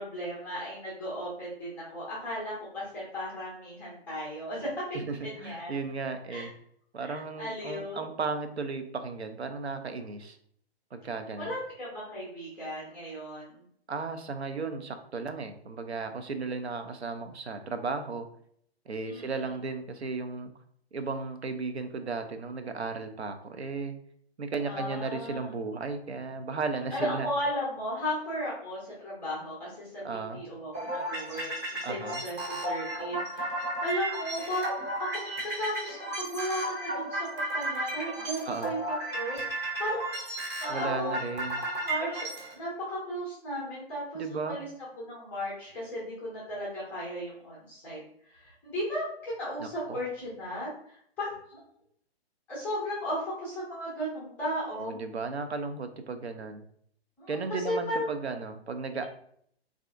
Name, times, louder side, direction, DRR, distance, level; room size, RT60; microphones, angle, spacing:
voice 1, 0.0-4.7 5.1-5.7 6.3-6.5 7.0-8.0 11.4-13.6 19.0-19.5 24.7-25.5 26.9-33.6 33.8-41.1 41.6-44.7 44.9-48.0 48.3-51.6 52.5-55.0 57.2-58.1, equal, 5° left, -7 dB, 0.4 m, -35 dB
voice 2, 4.9-6.5 6.9-10.4 10.9-11.5 13.9-18.3 18.9-20.5 20.9-23.9 24.4-27.3 30.0-30.4 31.8-32.2 38.5-38.7 40.7-41.6 44.1-44.6 49.6-50.0 54.8-56.6 57.3-59.1, right 4 dB, 85° right, 8 dB, 0.5 m, -35 dB
sound 1, 30.7-42.5, right 1 dB, 20° right, 0.7 m, -34 dB
3.2 x 2.4 x 2.4 m, 0.65 s
figure-of-eight pair, 120°, 32 cm